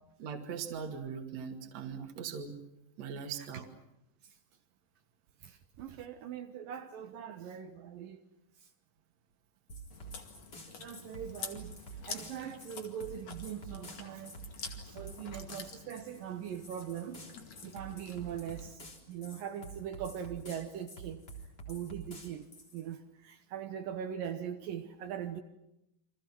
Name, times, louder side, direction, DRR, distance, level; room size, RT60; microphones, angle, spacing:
voice 1, 0.2-2.6 3.0-3.7, right 6 dB, 50° right, 3 dB, 3.2 m, -40 dB
voice 2, 5.4-8.2 10.8-14.4 14.8-17.3 17.6-21.2 21.7-25.4, right 9 dB, 75° right, 6 dB, 2.8 m, -41 dB
sound 1, 9.7-22.9, right 3 dB, 25° left, 4.1 m, -48 dB
Chewing mastication, 9.9-18.7, left 6 dB, 50° left, 3.1 m, -48 dB
29.5 x 25.0 x 6.1 m, 0.85 s
omnidirectional pair, 4.2 m